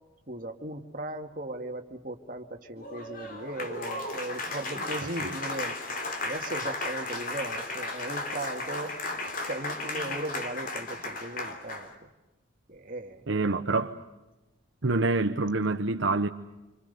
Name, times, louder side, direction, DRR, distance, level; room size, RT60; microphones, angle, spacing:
voice 1, 0.3-5.8 6.2-8.9 9.5-11.9 12.7-13.2, right 1 dB, 45° right, 2.1 m, -37 dB
Applause, 2.8-11.9, left 2 dB, 45° left, 3.2 m, -35 dB
voice 2, 13.3-14.0 14.8-16.3, right 3 dB, 70° right, 1.0 m, -26 dB
28.0 x 26.0 x 6.8 m
head